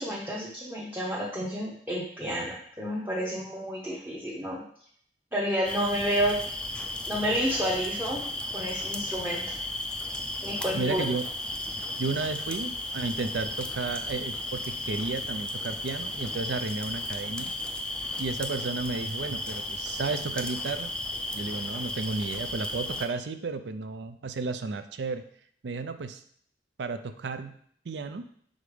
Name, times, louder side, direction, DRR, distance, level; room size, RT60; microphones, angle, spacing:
voice 1, 0.0-4.6 5.3-6.4 7.1-8.2 8.5-9.4 10.4-11.0, equal, 10° right, -5 dB, 0.8 m, -30 dB
sound 1, 5.6-23.1, left 1 dB, 5° left, 0.4 m, -34 dB
voice 2, 10.7-11.3 12.0-17.5 18.2-20.9 21.3-25.2 25.6-26.2 26.8-27.5 27.9-28.3, right 3 dB, 75° right, 10 dB, 0.5 m, -33 dB
5.1 x 3.9 x 4.9 m, 0.63 s
head